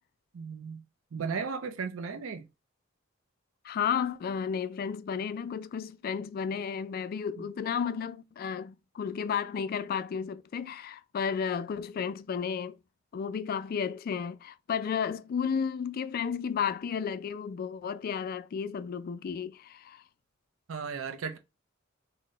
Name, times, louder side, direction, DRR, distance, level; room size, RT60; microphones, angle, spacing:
voice 1, 0.3-0.8 1.1-2.5 20.7-21.4, right 5 dB, 80° right, 0.5 m, -35 dB
voice 2, 3.6-12.8 13.1-20.0, left 7 dB, 45° left, 0.3 m, -33 dB
4.0 x 2.1 x 3.7 m
head